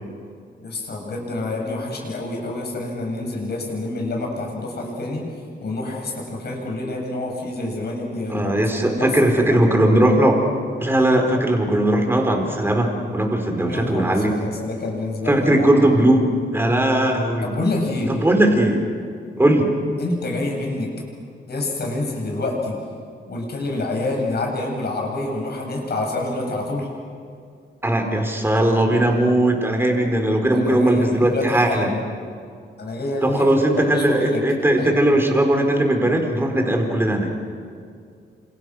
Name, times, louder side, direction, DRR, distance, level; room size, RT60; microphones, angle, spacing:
voice 1, 0.6-5.3 5.6-9.7 13.6-15.7 17.4-18.1 20.0-20.9 21.5-22.8 23.3-26.9 30.5-32.0 32.8-34.4 34.8-34.9, left 2 dB, 60° left, 0 dB, 7.7 m, -27 dB
voice 2, 8.3-10.4 10.8-14.3 15.3-16.3 16.5-17.5 18.2-18.8 19.4-19.7 27.8-31.9 33.2-37.3, right 1 dB, 10° right, 3 dB, 4.4 m, -18 dB
29.5 x 27.5 x 6.4 m, 2.3 s
wide cardioid pair, 110°, 19 cm